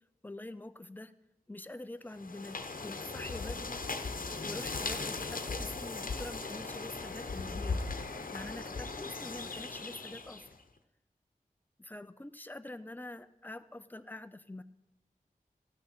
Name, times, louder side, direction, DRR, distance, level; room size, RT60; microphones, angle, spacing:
voice 1, 0.2-1.1 1.5-4.1 4.4-8.0 8.3-10.5 11.8-14.6, left 2 dB, 10° left, 11 dB, 0.6 m, -45 dB
sound 1, 2.1-10.6, left 3 dB, 70° left, 1.0 m, -38 dB
14.5 x 12.0 x 4.4 m, 0.95 s
wide cardioid pair, 70°, 15 cm